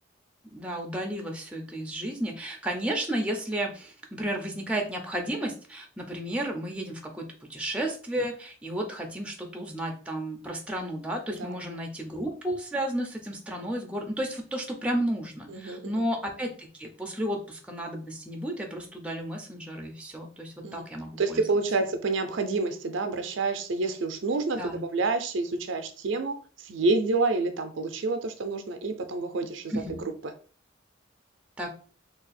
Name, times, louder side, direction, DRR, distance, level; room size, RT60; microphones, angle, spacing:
voice 1, 0.5-21.4 24.6-24.8 29.7-30.1 31.6-31.7, right 1 dB, 5° right, 0.5 m, -33 dB
voice 2, 15.5-16.0 20.6-20.9 21.2-30.0 30.2-30.3, right 3 dB, 70° right, 0.4 m, -28 dB
2.7 x 2.4 x 4.0 m
head